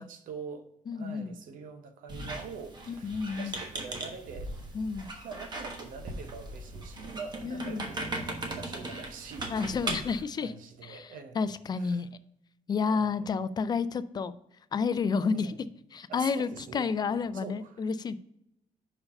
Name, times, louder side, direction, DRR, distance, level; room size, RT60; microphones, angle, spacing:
voice 1, 0.0-4.8 5.2-12.0 12.8-13.4 15.3-15.5 16.1-17.9, right 5 dB, 80° right, 0.8 m, -45 dB
voice 2, 0.9-1.3 2.9-3.5 4.7-5.1 7.4-7.8 9.5-10.5 10.9-11.1 11.4-12.1 12.7-14.3 14.7-15.5 15.9-18.2, left 5 dB, 30° left, 0.3 m, -30 dB
Squeak, 2.1-10.2, right 2 dB, 30° right, 1.1 m, -38 dB
5.4 x 4.7 x 5.3 m
cardioid pair, 145°, 14 cm